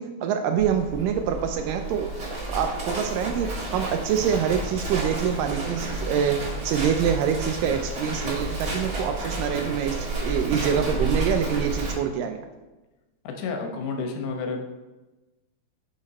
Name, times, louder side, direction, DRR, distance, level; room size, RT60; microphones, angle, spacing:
voice 1, 0.0-2.1 2.5-12.5, right 8 dB, 80° right, 6 dB, 2.0 m, -26 dB
Livestock farm animals working animals, 0.6-11.9, right 2 dB, 45° right, 1.2 m, -31 dB
voice 2, 13.2-14.6, left 4 dB, 90° left, 4 dB, 2.9 m, -30 dB
9.6 x 5.2 x 4.1 m, 1.1 s
omnidirectional pair, 4.3 m